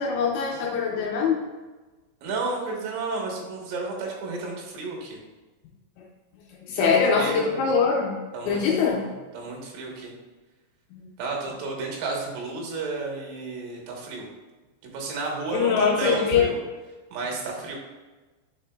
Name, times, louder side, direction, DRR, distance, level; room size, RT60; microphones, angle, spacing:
voice 1, 0.0-1.4 6.7-8.2 8.5-9.0 10.9-11.0 15.5-16.5, left 6 dB, 80° left, -1 dB, 2.8 m, -23 dB
voice 2, 2.2-5.2 6.8-7.7 8.3-10.1 11.2-14.3 14.8-16.6 17.1-17.8, right 3 dB, 80° right, -1 dB, 3.7 m, -32 dB
8.8 x 4.7 x 2.3 m, 1.2 s
omnidirectional pair, 5.6 m